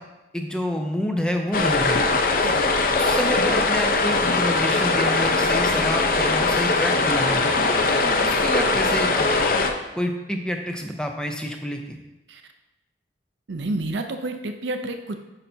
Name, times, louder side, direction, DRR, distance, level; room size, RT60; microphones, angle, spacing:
voice 1, 0.3-2.0 2.6-7.4 8.0-9.3 9.9-12.0, equal, 5° left, 3 dB, 0.5 m, -28 dB
sound 1, 1.5-9.7, left 3 dB, 50° left, 0.6 m, -21 dB
voice 2, 13.5-15.2, right 2 dB, 80° right, 6 dB, 0.5 m, -29 dB
9.9 x 5.6 x 2.7 m, 1.0 s
head